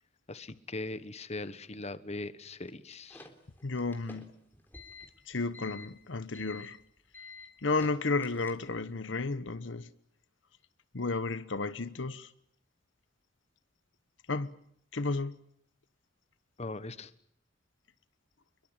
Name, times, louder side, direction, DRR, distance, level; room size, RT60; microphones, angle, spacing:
voice 1, 0.3-3.3 16.6-17.1, left 2 dB, 35° left, 1.2 m, -40 dB
sound 1, 2.7-8.9, left 3 dB, 10° left, 3.8 m, -50 dB
voice 2, 3.6-4.3 5.3-6.8 7.6-9.9 10.9-12.3 14.3-14.6 14.9-15.4, left 3 dB, 70° left, 1.1 m, -32 dB
27.5 x 22.5 x 8.9 m
head